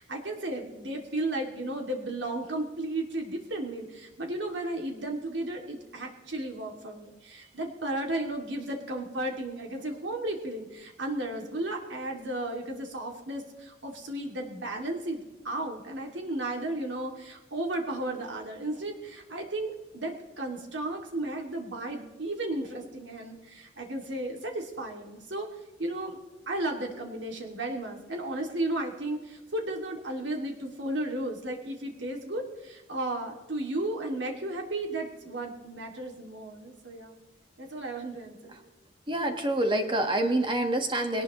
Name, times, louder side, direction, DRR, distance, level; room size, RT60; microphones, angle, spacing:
voice 1, 0.0-25.5 25.8-26.2 26.5-37.2 37.6-38.6, right 1 dB, 75° right, 1 dB, 2.4 m, -34 dB
voice 2, 39.1-41.2, right 1 dB, 25° right, 5 dB, 1.4 m, -27 dB
20.5 x 18.5 x 3.1 m, 1.1 s
head